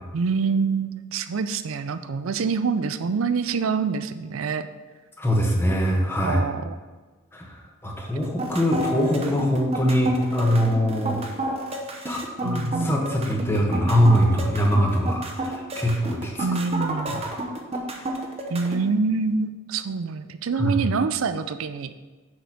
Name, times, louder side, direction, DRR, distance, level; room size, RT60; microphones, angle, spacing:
voice 1, 0.1-4.7 6.2-6.8 12.4-13.1 16.4-17.2 18.5-21.9, right 5 dB, 80° right, 11 dB, 0.5 m, -26 dB
voice 2, 5.2-6.4 7.3-7.5 7.8-11.2 12.0-16.3 20.6-20.7, equal, 10° left, 0 dB, 1.1 m, -22 dB
sound 1, 8.2-18.8, right 1 dB, 30° right, 0.9 m, -31 dB
6.4 x 5.2 x 6.0 m, 1.3 s
head